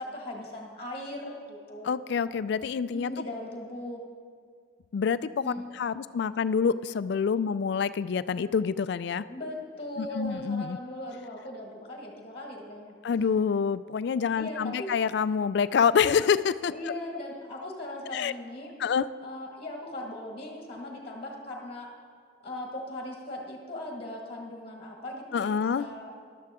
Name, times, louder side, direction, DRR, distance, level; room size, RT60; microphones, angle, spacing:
voice 1, 0.0-2.0 2.9-4.0 5.4-5.7 9.3-13.3 14.3-14.9 16.7-18.7 19.2-21.9 22.4-26.1, left 1 dB, 30° left, 0 dB, 1.7 m, -39 dB
voice 2, 1.8-3.1 4.9-9.3 10.0-10.8 13.0-16.7 18.1-18.3 18.8-19.1 25.3-25.9, left 6 dB, 55° left, 15 dB, 0.3 m, -27 dB
14.0 x 11.5 x 3.6 m, 2.1 s
head